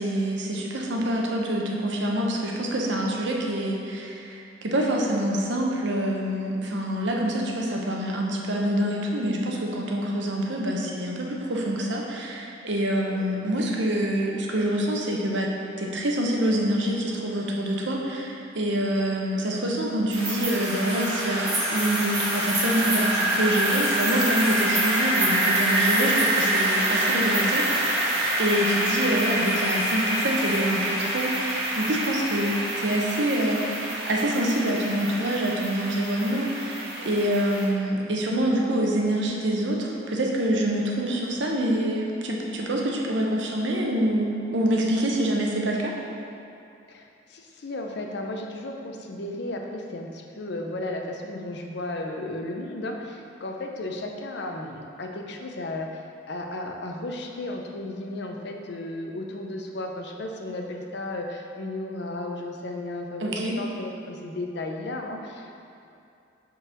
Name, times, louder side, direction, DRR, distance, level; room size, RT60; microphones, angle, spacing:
voice 1, 0.0-15.5 15.8-45.9 63.2-63.6, right 1 dB, 65° right, -1 dB, 0.8 m, -26 dB
sound 1, 20.1-37.7, right 1 dB, 30° right, 1.3 m, -26 dB
voice 2, 46.9-56.0 56.3-65.6, left 2 dB, 55° left, 2 dB, 0.6 m, -34 dB
5.4 x 3.9 x 5.8 m, 2.5 s
head